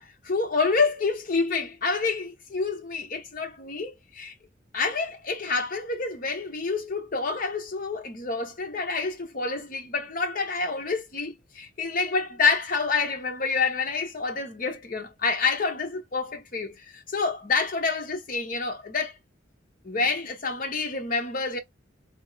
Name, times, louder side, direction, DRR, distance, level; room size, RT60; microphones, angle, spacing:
voice 1, 0.0-4.3 4.7-19.2 19.8-21.6, left 4 dB, 45° left, 0.8 m, -28 dB
3.5 x 2.3 x 3.2 m
head